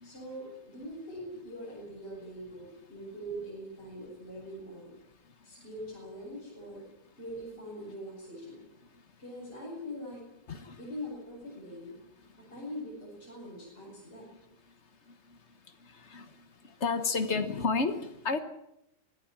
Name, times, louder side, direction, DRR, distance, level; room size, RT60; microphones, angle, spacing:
voice 1, 0.0-4.9 5.4-6.9 7.2-8.7 9.2-10.2 10.8-12.0 12.5-14.3, equal, 20° left, -4 dB, 7.1 m, -42 dB
voice 2, 16.8-18.4, left 4 dB, 70° left, 7 dB, 0.6 m, -30 dB
25.5 x 17.5 x 7.4 m, 0.83 s
omnidirectional pair, 3.4 m